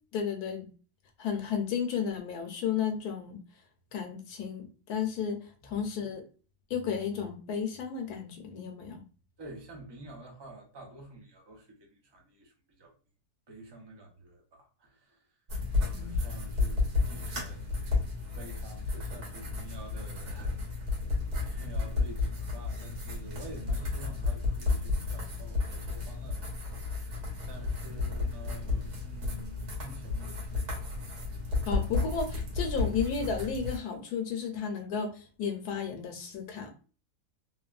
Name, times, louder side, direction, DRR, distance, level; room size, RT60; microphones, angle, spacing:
voice 1, 0.1-0.7 1.2-3.4 3.9-6.2 6.7-9.0 15.9-16.1 31.6-36.8, left 6 dB, 75° left, 1.1 m, -33 dB
voice 2, 9.4-12.5 12.8-12.9 13.5-15.2 15.7-16.8 17.1-17.7 18.3-20.9 21.4-31.1, right 2 dB, 35° right, 0.4 m, -49 dB
sound 1, 15.5-33.8, left 3 dB, 80° right, 1.7 m, -32 dB
3.2 x 2.2 x 2.4 m
omnidirectional pair, 1.7 m